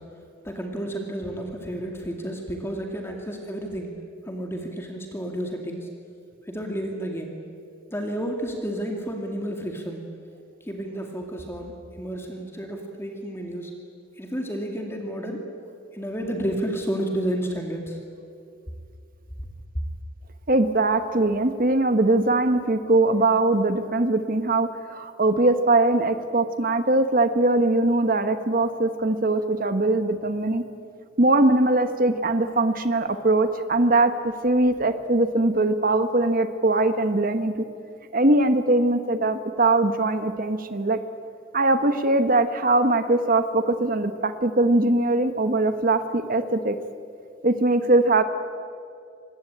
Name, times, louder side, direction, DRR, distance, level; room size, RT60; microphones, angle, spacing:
voice 1, 0.4-3.9 4.2-5.9 6.5-7.3 7.9-10.0 10.7-13.7 14.2-15.4 15.9-18.0, right 1 dB, 10° left, 2 dB, 2.3 m, -31 dB
voice 2, 20.5-30.6 31.2-34.1 34.4-37.5 38.1-41.0 41.5-46.8 47.4-48.2, right 2 dB, 45° right, 9 dB, 1.2 m, -21 dB
26.0 x 20.5 x 8.9 m, 2.4 s
head